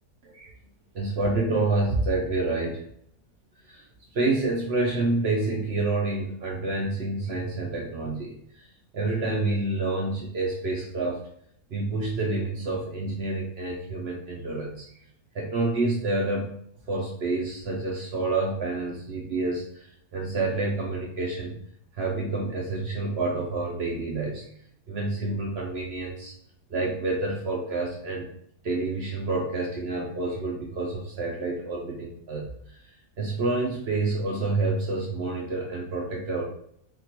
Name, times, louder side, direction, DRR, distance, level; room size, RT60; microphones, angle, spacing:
voice 1, 0.9-2.8 3.7-3.8 4.1-8.6 8.9-11.2 11.7-14.9 15.3-16.6 16.9-21.6 21.9-24.4 24.9-26.3 26.7-28.3 28.6-32.8 33.2-36.5, right 2 dB, 60° right, -2 dB, 0.7 m, -28 dB
3.6 x 2.4 x 2.8 m, 0.67 s
omnidirectional pair, 1.5 m